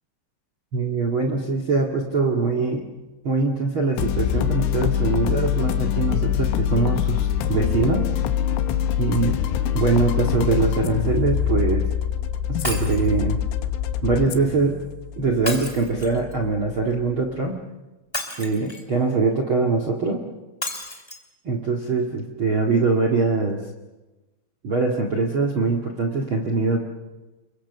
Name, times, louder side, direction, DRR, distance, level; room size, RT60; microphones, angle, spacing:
voice 1, 0.7-2.9 3.2-8.1 9.0-9.4 9.7-11.8 12.5-13.4 14.0-14.8 15.2-17.6 18.4-20.2 21.4-23.6 24.6-26.8, right 3 dB, 85° right, 3 dB, 1.1 m, -23 dB
sound 1, 4.0-17.4, left 9 dB, 80° left, 3.7 m, -25 dB
Shatter, 12.6-13.1 15.4-16.3 18.1-18.9 20.6-21.2 21.8-21.9 22.2-22.3, left 1 dB, 10° left, 1.2 m, -31 dB
29.0 x 23.0 x 6.9 m, 1.1 s
omnidirectional pair, 5.8 m